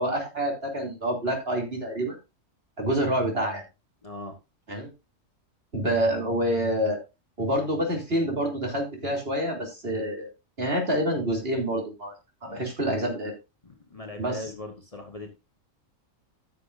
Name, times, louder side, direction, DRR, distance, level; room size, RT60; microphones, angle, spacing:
voice 1, 0.0-2.2 2.8-3.6 4.7-4.9 5.7-7.0 7.4-10.3 10.6-12.1 12.4-13.3 14.2-14.4, equal, 45° right, 1 dB, 3.3 m, -27 dB
voice 2, 4.0-4.4 12.5-12.7 13.6-15.3, left 2 dB, 25° left, 4 dB, 1.4 m, -40 dB
14.5 x 6.9 x 2.6 m, 0.26 s
omnidirectional pair, 1.4 m